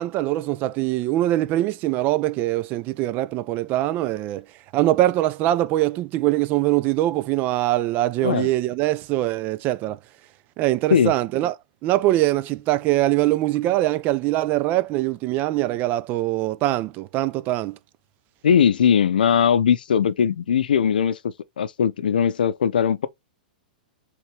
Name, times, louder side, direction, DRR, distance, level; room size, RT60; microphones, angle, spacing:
voice 1, 0.0-4.4 4.7-10.0 10.6-11.6 11.8-17.8, right 15 dB, 40° right, 0.4 m, -22 dB
voice 2, 18.4-23.1, left 7 dB, 80° left, 0.5 m, -20 dB
4.5 x 3.2 x 3.2 m
hypercardioid pair, 115°, 5 cm